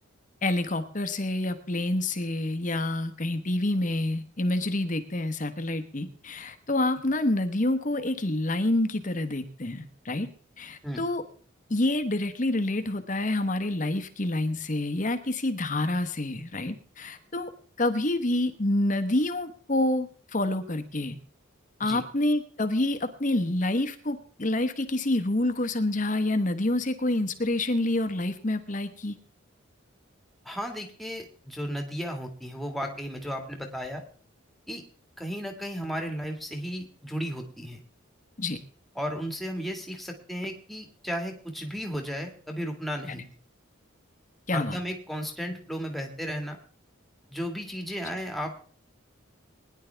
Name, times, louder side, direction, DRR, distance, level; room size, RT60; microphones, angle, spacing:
voice 1, 0.4-10.3 10.6-11.2 11.7-17.5 17.8-21.2 21.8-29.2 38.4-38.6 44.5-44.8, left 1 dB, 40° left, 9 dB, 1.1 m, -27 dB
voice 2, 30.5-34.0 34.7-34.8 35.2-37.8 39.0-43.3 44.5-46.6 47.3-48.7, equal, ahead, 3 dB, 1.8 m, -34 dB
21.0 x 10.5 x 3.4 m, 0.43 s
head